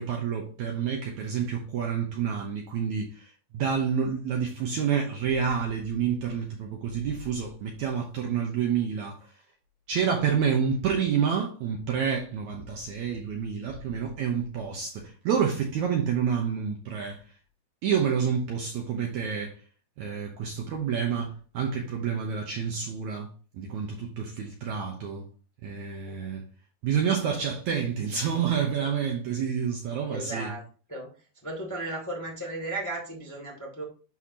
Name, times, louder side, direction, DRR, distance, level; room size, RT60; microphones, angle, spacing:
voice 1, 0.0-9.2 9.9-17.2 17.8-19.5 20.0-23.3 23.5-25.2 25.6-26.5 26.8-30.5, right 7 dB, 70° right, 1.9 m, -28 dB
voice 2, 30.1-31.1 31.4-33.8, right 2 dB, 5° left, 1.3 m, -35 dB
12.0 x 4.3 x 2.8 m
omnidirectional pair, 4.2 m